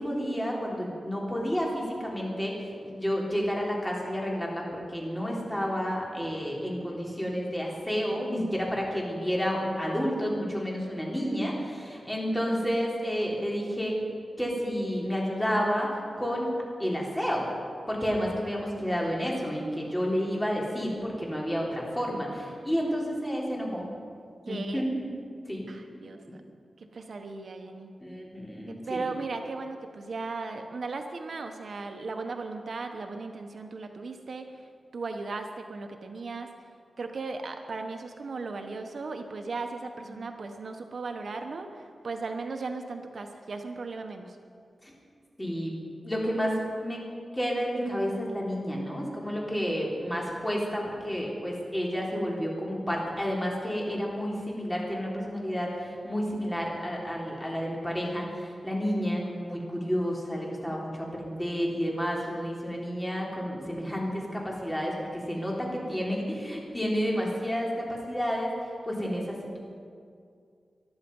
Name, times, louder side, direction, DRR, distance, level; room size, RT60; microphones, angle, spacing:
voice 1, 0.0-13.9 14.4-16.5 16.8-17.5 17.9-23.9 24.5-25.1 25.5-25.6 28.0-29.1 44.8-44.9 45.4-45.7 46.0-47.0 47.3-68.5 68.8-69.6, equal, 10° left, -2 dB, 3.6 m, -30 dB
voice 2, 24.5-24.8 25.7-26.2 26.8-27.9 28.9-34.5 34.9-36.5 37.0-44.4, right 3 dB, 65° right, 5 dB, 1.1 m, -37 dB
20.0 x 12.5 x 5.5 m, 2.3 s
wide cardioid pair, 110°, 0 cm